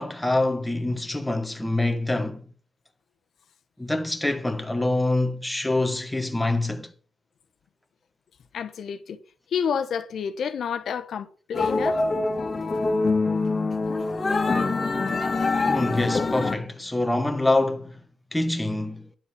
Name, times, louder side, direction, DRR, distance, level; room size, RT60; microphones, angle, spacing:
voice 1, 0.0-2.4 3.8-6.9 15.7-18.0 18.3-19.1, left 2 dB, 5° left, 1.2 m, -25 dB
voice 2, 8.5-9.2 9.5-12.0, left 7 dB, 65° left, 1.0 m, -29 dB
sound 1, 11.5-16.5, left 3 dB, 30° left, 1.8 m, -24 dB
10.5 x 7.2 x 7.0 m
cardioid pair, 135°, 0 cm